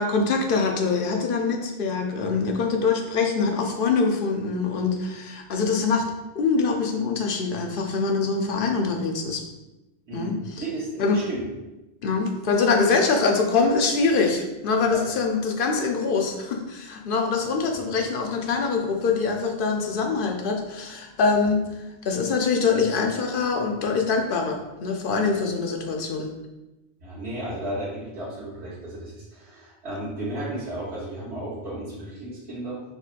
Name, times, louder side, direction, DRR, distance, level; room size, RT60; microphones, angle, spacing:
voice 1, 0.0-6.0 6.3-9.4 10.1-10.6 11.0-11.2 12.0-21.7 22.0-26.3, left 4 dB, 60° left, 2 dB, 0.8 m, -24 dB
voice 2, 10.1-11.4 14.9-15.0 17.8-17.9 27.0-32.8, right 1 dB, 75° right, -9 dB, 1.3 m, -34 dB
5.7 x 3.0 x 2.5 m, 1.0 s
omnidirectional pair, 1.1 m